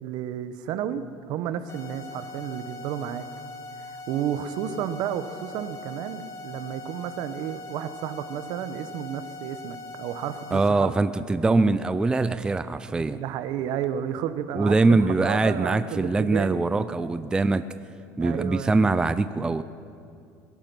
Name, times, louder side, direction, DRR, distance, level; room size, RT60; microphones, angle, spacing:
voice 1, 0.0-3.3 3.8-10.9 13.1-16.8 18.2-18.9, right 9 dB, 65° right, 11 dB, 1.0 m, -32 dB
sound 1, 1.7-10.7, left 2 dB, 40° left, 1.8 m, -41 dB
voice 2, 10.5-13.2 14.5-17.6 18.2-19.6, right 3 dB, 10° right, 12 dB, 0.4 m, -23 dB
22.0 x 10.5 x 6.1 m, 2.5 s
cardioid pair, 135°, 8 cm